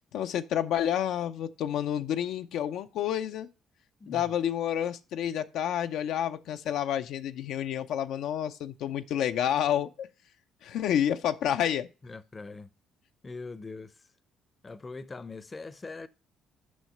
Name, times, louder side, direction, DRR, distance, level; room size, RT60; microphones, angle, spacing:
voice 1, 0.1-3.5 4.1-10.1 10.6-11.9, left 10 dB, 75° left, 0.5 m, -29 dB
voice 2, 4.0-4.3 12.0-12.7 13.2-14.1 14.6-16.1, left 3 dB, 25° left, 0.6 m, -42 dB
6.2 x 5.6 x 6.5 m
supercardioid pair, 80°, 0 cm